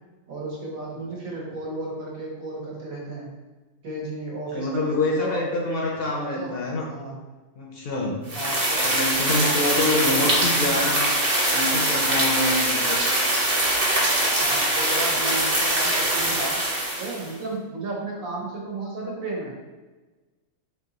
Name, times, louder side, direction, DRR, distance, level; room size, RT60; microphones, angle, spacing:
voice 1, 0.3-3.3 3.8-5.7 6.0-6.5 6.9-7.2 8.3-8.9 9.8-10.3 14.4-16.6 17.0-19.5, right 2 dB, 90° right, -3 dB, 1.5 m, -33 dB
voice 2, 4.5-6.9 7.6-8.3 8.8-11.2 11.5-13.0, left 2 dB, 60° left, -1 dB, 0.6 m, -26 dB
sound 1, 8.3-17.3, right 1 dB, 35° right, 0.7 m, -23 dB
3.5 x 2.9 x 3.8 m, 1.2 s
omnidirectional pair, 1.4 m